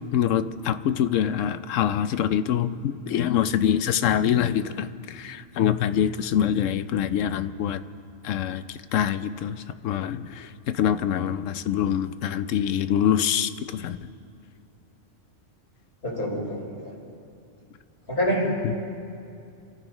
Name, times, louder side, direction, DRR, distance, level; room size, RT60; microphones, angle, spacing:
voice 1, 0.1-7.8 8.2-8.6 8.9-14.0 18.6-18.8, left 9 dB, 90° left, 12 dB, 1.0 m, -25 dB
voice 2, 16.0-16.9 18.1-18.5, equal, 55° left, -6 dB, 5.0 m, -27 dB
29.0 x 14.0 x 3.1 m, 2.4 s
omnidirectional pair, 1.3 m